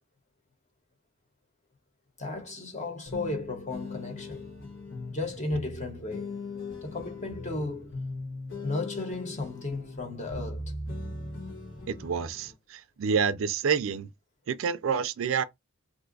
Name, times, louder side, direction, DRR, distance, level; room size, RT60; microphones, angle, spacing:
voice 1, 2.2-4.5 5.1-6.3 6.8-7.9 8.6-10.7, left 2 dB, 35° left, 1.1 m, -34 dB
sound 1, 3.1-12.5, left 2 dB, 65° left, 1.3 m, -39 dB
voice 2, 11.9-14.1 14.5-15.4, right 6 dB, 70° right, 0.4 m, -28 dB
2.6 x 2.3 x 3.8 m
head